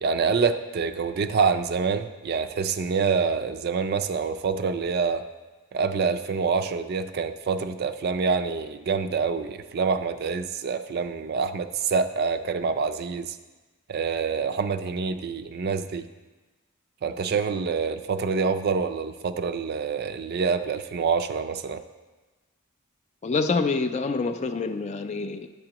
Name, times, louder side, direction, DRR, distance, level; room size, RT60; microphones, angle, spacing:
voice 1, 0.0-5.2 5.7-13.4 13.9-16.1 17.0-21.8, right 5 dB, 45° right, 9 dB, 0.3 m, -26 dB
voice 2, 23.2-25.5, left 4 dB, 30° left, 7 dB, 0.3 m, -26 dB
11.0 x 7.7 x 2.9 m, 1.2 s
head